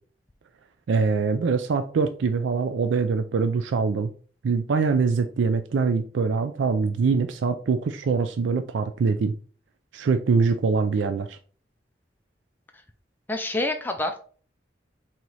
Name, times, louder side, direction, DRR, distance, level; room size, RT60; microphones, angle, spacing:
voice 1, 0.9-4.1 4.4-9.3 9.9-11.4, right 4 dB, 90° right, 0.4 m, -23 dB
voice 2, 13.3-14.2, left 2 dB, 10° left, 0.4 m, -27 dB
4.0 x 2.9 x 4.6 m
head